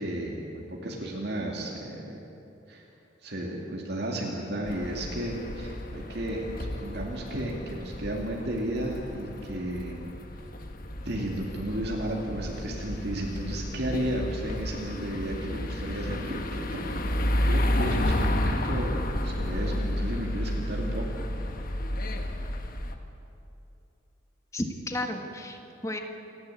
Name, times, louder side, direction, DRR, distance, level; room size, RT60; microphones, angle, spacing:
voice 1, 0.0-2.2 2.7-2.8 3.2-10.1 11.0-21.0, right 1 dB, 60° right, -2 dB, 2.5 m, -33 dB
sound 1, 4.7-22.9, left 1 dB, 50° left, 1.3 m, -31 dB
voice 2, 24.5-26.0, left 1 dB, 15° left, 4 dB, 1.6 m, -33 dB
28.5 x 11.5 x 8.5 m, 2.8 s
head